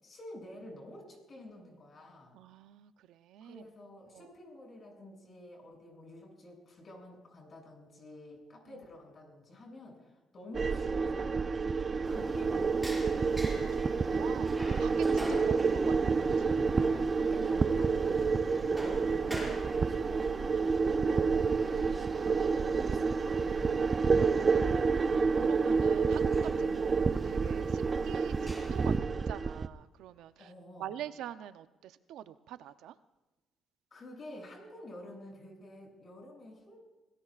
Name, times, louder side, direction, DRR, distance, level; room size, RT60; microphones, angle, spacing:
voice 1, 0.0-2.3 3.4-11.6 12.0-12.8 15.1-15.4 17.2-18.9 19.2-22.5 22.7-24.8 26.5-26.9 30.4-30.9 33.9-36.8, left 1 dB, 45° left, 1 dB, 7.4 m, -50 dB
voice 2, 2.3-3.7 4.1-4.3 8.7-8.8 13.1-16.5 25.1-30.5 30.8-33.0, right 11 dB, 85° right, 12 dB, 0.6 m, -46 dB
sound 1, 10.5-29.7, right 5 dB, 35° right, 0.6 m, -29 dB
sound 2, 12.0-29.0, equal, ahead, 6.5 m, -46 dB
26.0 x 18.5 x 2.5 m, 1.1 s
cardioid pair, 90°, 0 cm